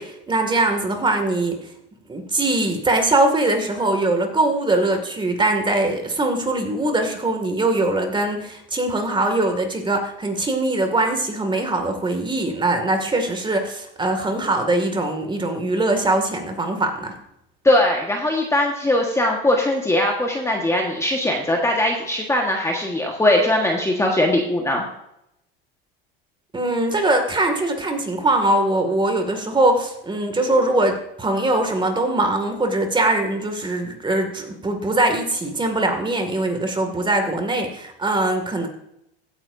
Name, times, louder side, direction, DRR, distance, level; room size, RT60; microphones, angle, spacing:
voice 1, 0.0-1.6 2.1-17.1 26.5-38.7, right 2 dB, 15° right, 5 dB, 2.3 m, -22 dB
voice 2, 17.6-24.8, left 1 dB, 10° left, 0 dB, 1.5 m, -20 dB
15.5 x 8.9 x 2.7 m, 0.81 s
supercardioid pair, 110°, 29 cm